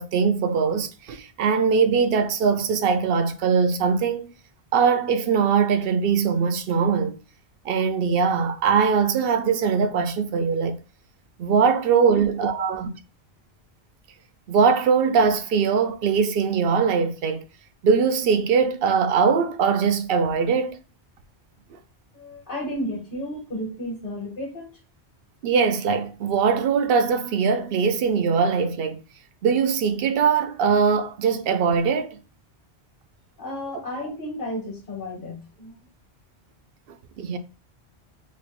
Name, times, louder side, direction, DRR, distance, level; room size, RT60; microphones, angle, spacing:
voice 1, 0.0-4.3 4.7-7.2 7.6-10.8 11.4-12.9 14.5-17.4 17.8-20.8 25.4-29.0 29.4-32.2 37.2-37.4, right 6 dB, 65° right, 0.7 m, -21 dB
voice 2, 12.1-12.7 22.1-24.7 33.4-35.7, left 1 dB, 55° left, 1.3 m, -33 dB
3.1 x 2.5 x 3.8 m
omnidirectional pair, 1.1 m